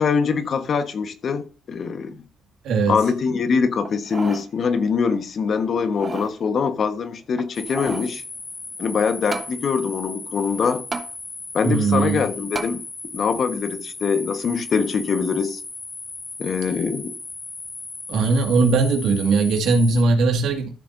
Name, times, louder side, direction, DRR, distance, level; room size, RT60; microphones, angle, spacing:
voice 1, 0.0-2.2 2.9-8.2 8.8-10.8 11.5-12.8 13.1-15.6 16.4-17.1, left 5 dB, 55° left, 1.4 m, -23 dB
voice 2, 2.6-3.0 11.6-12.2 18.1-20.7, right 3 dB, 80° right, 2.1 m, -19 dB
sound 1, 3.8-4.5 4.9-5.0 5.8-6.3 7.3-8.1 9.3-9.5 10.9-11.1 12.5-12.7 13.3-13.4, right 4 dB, 30° right, 1.1 m, -32 dB
sound 2, 7.5-20.0, left 3 dB, 25° left, 1.7 m, -36 dB
13.5 x 7.2 x 2.7 m
cardioid pair, 90°, 0 cm